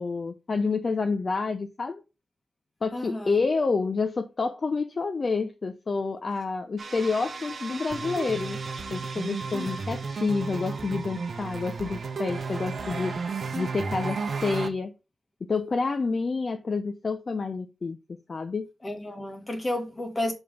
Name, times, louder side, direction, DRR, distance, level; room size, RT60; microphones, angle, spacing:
voice 1, 0.0-2.0 2.8-8.6 8.9-13.1 13.5-14.9 15.5-18.0 18.3-18.7, left 4 dB, 40° left, 0.6 m, -28 dB
voice 2, 2.9-3.4 9.5-9.8 18.8-20.3, left 1 dB, 20° left, 1.7 m, -32 dB
sound 1, 6.8-14.7, right 4 dB, 55° right, 0.9 m, -33 dB
6.8 x 3.5 x 5.1 m
wide cardioid pair, 150°, 0 cm